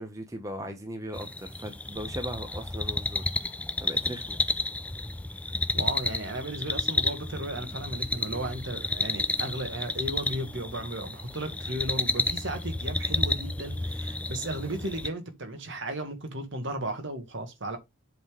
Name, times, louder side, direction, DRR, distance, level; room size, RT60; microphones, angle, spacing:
voice 1, 0.0-3.3 3.8-4.4 13.1-13.2, equal, 15° right, 0.9 m, -38 dB
sound 1, 1.1-15.1, left 2 dB, 5° left, 0.3 m, -31 dB
voice 2, 5.7-17.8, right 1 dB, 55° right, 1.7 m, -35 dB
7.8 x 3.8 x 5.0 m
head